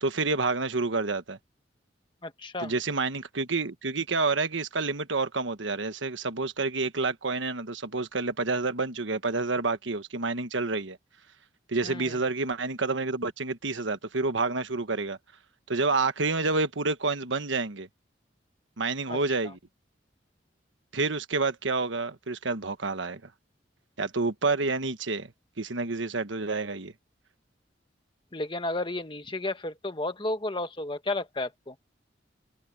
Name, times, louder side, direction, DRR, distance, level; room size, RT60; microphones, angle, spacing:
voice 1, 0.0-1.4 2.6-11.0 11.7-15.2 15.7-17.9 18.8-19.6 20.9-23.2 24.0-25.3 25.6-26.9, right 3 dB, 85° right, 1.3 m, -29 dB
voice 2, 2.2-2.7 11.8-12.2 19.1-19.2 28.3-31.7, left 2 dB, 25° left, 1.3 m, -32 dB
head